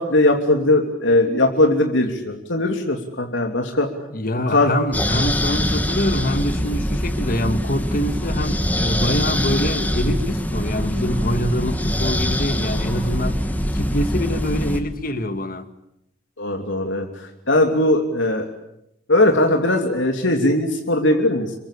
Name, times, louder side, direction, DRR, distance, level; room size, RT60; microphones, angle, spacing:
voice 1, 0.0-3.9 4.5-4.7 16.4-18.5 19.1-21.5, left 1 dB, 75° left, 3.1 m, -19 dB
voice 2, 4.1-13.4 13.7-15.7, left 1 dB, 45° left, 2.1 m, -25 dB
sound 1, 4.9-14.8, equal, 10° left, 2.3 m, -23 dB
28.5 x 23.5 x 8.6 m
head